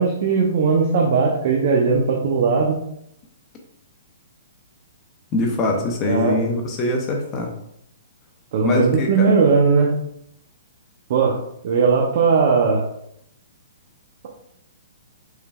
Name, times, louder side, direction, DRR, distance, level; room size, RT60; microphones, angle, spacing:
voice 1, 0.0-2.8 6.0-6.4 8.5-9.9 11.1-11.4 11.6-12.9, right 5 dB, 50° right, -1 dB, 0.6 m, -18 dB
voice 2, 5.3-7.5 8.6-9.3, left 2 dB, 25° left, 1 dB, 0.6 m, -23 dB
4.7 x 3.2 x 2.3 m, 0.76 s
hypercardioid pair, 150°, 0 cm